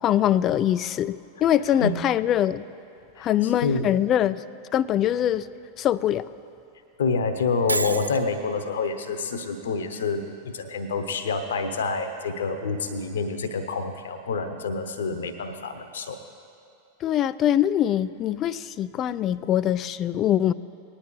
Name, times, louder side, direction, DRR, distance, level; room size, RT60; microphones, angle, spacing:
voice 1, 0.0-2.6 3.2-4.4 4.7-5.5 5.8-6.2 17.0-20.5, left 11 dB, 30° left, 17 dB, 0.3 m, -23 dB
voice 2, 3.2-4.0 7.0-10.2 10.5-16.2, left 4 dB, 65° left, 9 dB, 0.9 m, -27 dB
Shatter, 7.7-8.2, right 2 dB, 80° right, 0.3 m, -27 dB
20.0 x 10.0 x 3.1 m, 2.6 s
figure-of-eight pair, 90°, 0 cm